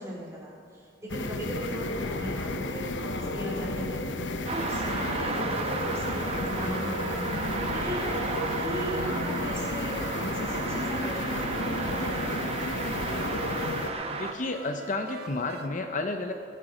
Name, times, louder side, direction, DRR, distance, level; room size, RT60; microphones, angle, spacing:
voice 1, 0.0-4.0 4.5-7.3 7.7-12.4, equal, 15° right, -5 dB, 4.2 m, -38 dB
sound 1, 1.1-13.9, left 2 dB, 80° left, 0.9 m, -32 dB
sound 2, 4.5-14.3, right 3 dB, 35° right, 1.0 m, -34 dB
sound 3, 6.1-15.7, right 2 dB, 60° right, 1.1 m, -42 dB
voice 2, 14.1-16.3, left 2 dB, 45° left, 5 dB, 0.8 m, -31 dB
20.0 x 9.5 x 5.1 m, 2.5 s
head